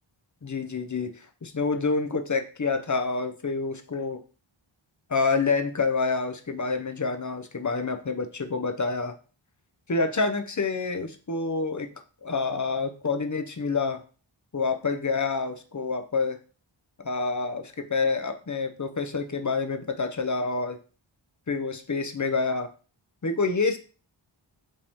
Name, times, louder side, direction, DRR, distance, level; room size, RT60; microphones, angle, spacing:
voice 1, 0.4-1.1 1.4-4.2 5.1-9.1 9.9-11.9 12.2-14.0 14.5-16.4 17.0-20.8 21.5-22.7 23.2-23.8, left 4 dB, 40° left, 7 dB, 0.6 m, -27 dB
5.3 x 2.8 x 3.5 m, 0.37 s
wide cardioid pair, 50°, 48 cm